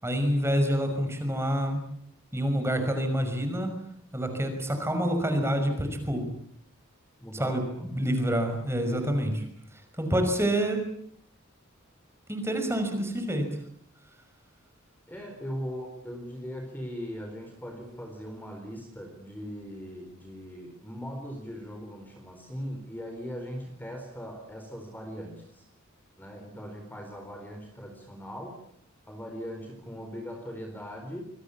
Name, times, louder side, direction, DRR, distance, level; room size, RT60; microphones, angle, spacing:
voice 1, 0.0-1.8 2.3-3.7 4.1-6.3 7.3-9.4 10.0-10.8 12.3-13.4, equal, 15° right, 6 dB, 5.7 m, -27 dB
voice 2, 7.2-7.9 9.2-9.5 15.1-25.6 26.2-28.6 29.0-31.2, equal, 10° left, 3 dB, 4.2 m, -40 dB
26.5 x 22.0 x 8.5 m, 0.67 s
head